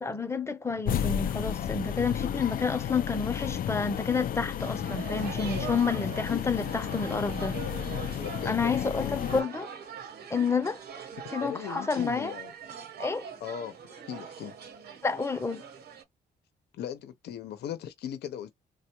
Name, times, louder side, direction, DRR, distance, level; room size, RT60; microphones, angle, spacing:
voice 1, 0.0-7.6 7.8-8.1 8.4-9.7 10.3-10.8 11.3-12.3 13.0-13.3 15.0-15.6, left 5 dB, 15° left, 0.7 m, -29 dB
sound 1, 0.9-9.4, left 9 dB, 60° left, 0.5 m, -32 dB
sound 2, 4.6-16.0, right 6 dB, 75° right, 1.0 m, -42 dB
voice 2, 8.2-9.5 11.4-12.5 13.4-13.8 14.1-14.6 16.7-18.5, left 9 dB, 80° left, 0.8 m, -38 dB
3.4 x 2.3 x 2.9 m
cardioid pair, 100°, 17 cm